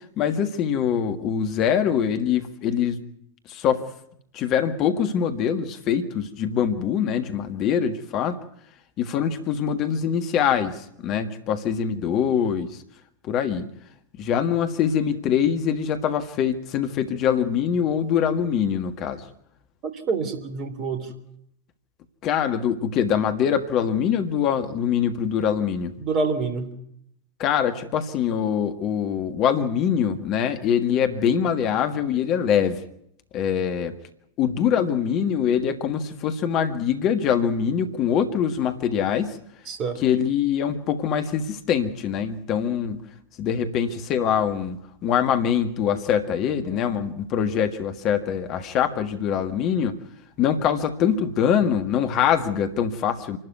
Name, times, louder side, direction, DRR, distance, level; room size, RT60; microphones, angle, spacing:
voice 1, 0.2-3.0 3.5-3.9 4.3-8.4 9.0-12.8 13.2-13.7 14.2-19.2 22.2-25.9 27.4-32.8 33.3-33.9 34.4-39.4 40.0-43.0 43.4-50.0 50.4-53.4, left 8 dB, 35° left, 8 dB, 1.7 m, -23 dB
voice 2, 19.8-21.1 26.0-26.7 39.7-40.0, right 4 dB, 35° right, 9 dB, 3.3 m, -27 dB
27.0 x 12.5 x 9.4 m, 0.73 s
figure-of-eight pair, 90°, 0 cm